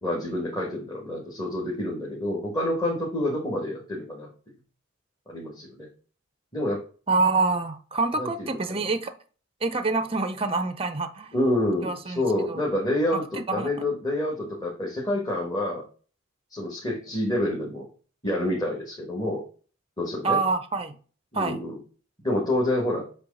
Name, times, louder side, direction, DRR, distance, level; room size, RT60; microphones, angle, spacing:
voice 1, 0.0-4.3 5.3-5.9 6.5-6.8 8.2-8.9 11.3-15.8 16.5-17.9 18.2-19.4 20.0-20.4 21.3-21.8 22.2-23.1, left 1 dB, 20° left, 1.6 m, -28 dB
voice 2, 7.1-9.1 9.6-11.3 11.8-12.2 12.5-12.6 13.4-13.7 20.2-20.9 21.3-21.6, right 3 dB, 25° right, 0.6 m, -26 dB
7.9 x 3.2 x 5.4 m
head